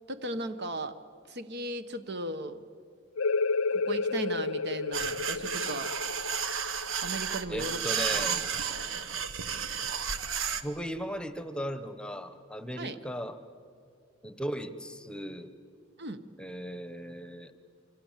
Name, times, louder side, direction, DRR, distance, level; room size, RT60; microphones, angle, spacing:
voice 1, 0.1-1.0 1.3-2.6 3.7-5.9 7.0-7.8 8.1-8.5 12.8-13.0 16.0-16.2, right 1 dB, 55° right, 10 dB, 1.3 m, -37 dB
sound 1, 3.2-8.5, left 4 dB, 75° left, 0.6 m, -32 dB
sound 2, 4.9-10.6, right 7 dB, 75° right, 1.3 m, -32 dB
voice 2, 7.5-8.4 10.6-13.4 14.2-15.5 16.4-17.5, equal, 5° left, 10 dB, 1.1 m, -37 dB
28.5 x 25.0 x 7.5 m, 2.3 s
head